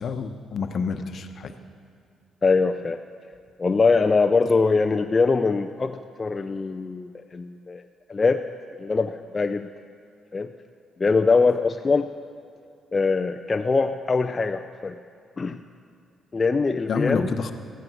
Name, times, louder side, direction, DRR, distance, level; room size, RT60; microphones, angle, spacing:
voice 1, 0.0-1.5 16.9-17.5, left 5 dB, 55° left, 7 dB, 1.0 m, -28 dB
voice 2, 2.4-3.0 3.6-7.8 8.1-8.4 8.8-9.7 10.3-10.5 11.0-12.1 12.9-15.0 15.4-15.6 16.3-17.3, left 4 dB, 30° left, 5 dB, 0.5 m, -22 dB
15.0 x 11.0 x 6.3 m, 2.5 s
cardioid pair, 90°, 0 cm